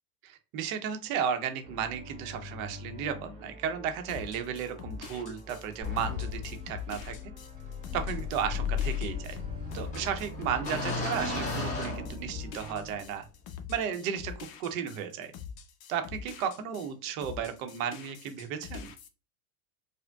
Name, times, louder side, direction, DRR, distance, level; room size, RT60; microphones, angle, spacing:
voice 1, 0.2-7.2 7.9-9.4 9.7-13.3 13.7-15.3 15.9-18.9, right 8 dB, 65° right, 7 dB, 0.8 m, -34 dB
sound 1, 1.6-13.0, left 1 dB, 15° right, 0.7 m, -48 dB
sound 2, 4.1-16.9 17.2-19.1, left 7 dB, 45° left, 0.6 m, -44 dB
sound 3, 5.8-12.7, left 5 dB, 15° left, 1.0 m, -35 dB
5.0 x 2.1 x 2.3 m, 0.32 s
supercardioid pair, 120°, 45 cm